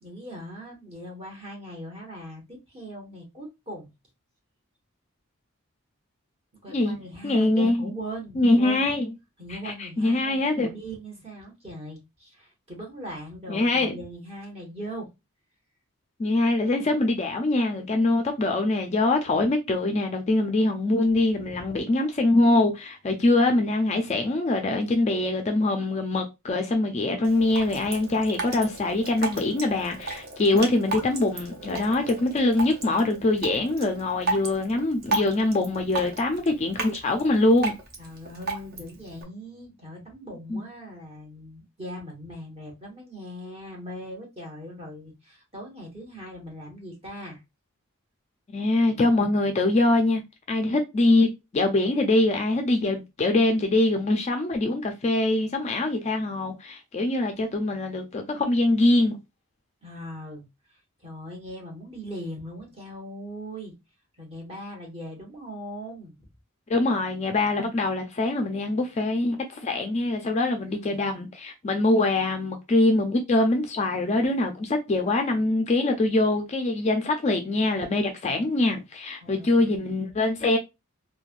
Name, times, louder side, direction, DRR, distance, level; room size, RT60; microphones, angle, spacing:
voice 1, 0.0-3.9 6.6-8.9 9.4-15.1 21.1-21.8 38.0-47.4 59.8-60.4 61.0-63.7 64.2-66.1 70.6-71.0 79.2-79.9, equal, 25° right, 0.9 m, -40 dB
voice 2, 7.2-7.9 8.4-9.1 9.5-10.7 13.5-13.9 16.2-37.7 40.5-40.6 48.5-50.2 50.5-59.2 66.7-80.6, left 2 dB, 30° left, 0.3 m, -23 dB
Drip, 27.2-39.2, right 3 dB, 45° right, 0.6 m, -34 dB
3.1 x 2.2 x 2.4 m
head